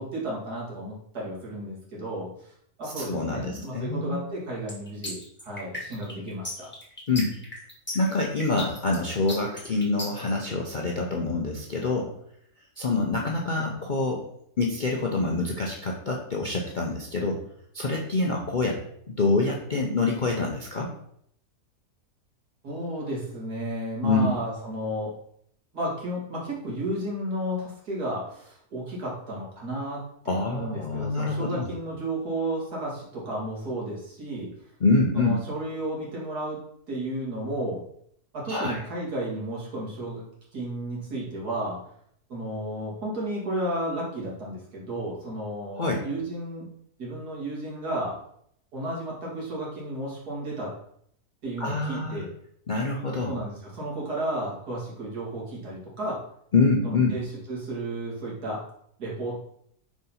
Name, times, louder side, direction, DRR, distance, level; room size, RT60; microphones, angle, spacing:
voice 1, 0.0-2.5 2.8-6.7 13.5-13.6 22.6-25.1 25.7-30.0 30.2-34.5 35.1-36.6 36.9-37.8 38.3-40.3 40.5-41.8 42.3-46.7 47.0-48.2 48.7-50.7 51.4-52.3 53.2-56.2 56.8-58.6 59.0-59.3, right 1 dB, 70° right, -4 dB, 2.7 m, -33 dB
voice 2, 2.8-4.2 7.1-7.3 7.9-12.1 12.8-14.2 14.6-17.4 17.7-18.8 19.1-20.9 24.0-24.3 30.3-31.7 34.8-35.4 38.5-38.8 45.7-46.0 51.6-52.2 52.7-53.3 56.5-57.2, left 3 dB, 45° left, -1 dB, 0.6 m, -26 dB
sound 1, 4.7-10.3, left 1 dB, 5° left, 1.4 m, -36 dB
4.8 x 4.0 x 5.5 m, 0.69 s
omnidirectional pair, 1.7 m